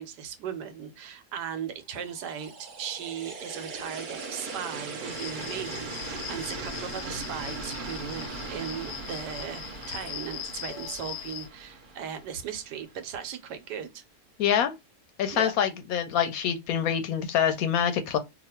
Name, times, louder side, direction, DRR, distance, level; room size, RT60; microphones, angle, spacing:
voice 1, 0.0-9.6 9.9-14.0 15.3-15.5, right 8 dB, 85° right, 1.3 m, -37 dB
sound 1, 1.9-13.0, right 3 dB, 60° right, 0.5 m, -39 dB
sound 2, 5.1-11.5, left 10 dB, 85° left, 1.2 m, -41 dB
voice 2, 14.4-14.7 15.2-18.2, left 8 dB, 70° left, 0.9 m, -25 dB
2.9 x 2.4 x 4.3 m
omnidirectional pair, 1.7 m